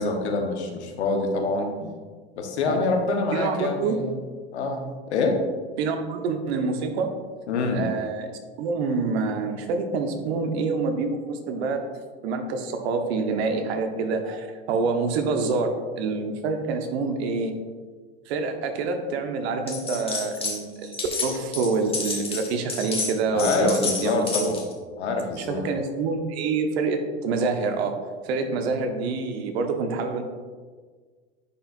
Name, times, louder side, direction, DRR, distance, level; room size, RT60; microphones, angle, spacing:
voice 1, 0.0-1.9 2.4-4.1 4.5-5.4 7.5-7.9 23.3-24.6 25.0-25.6, left 3 dB, 85° left, 3 dB, 1.1 m, -26 dB
voice 2, 3.3-4.0 5.8-7.1 7.7-11.8 12.2-15.7 16.0-17.6 18.3-21.0 21.2-24.5 25.4-27.9 28.2-30.2, right 4 dB, 70° right, 5 dB, 1.0 m, -26 dB
sound 1, 19.7-20.6 20.8-24.7, left 4 dB, 15° left, 1.3 m, -30 dB
9.9 x 4.6 x 2.6 m, 1.5 s
hypercardioid pair, 100°, 33 cm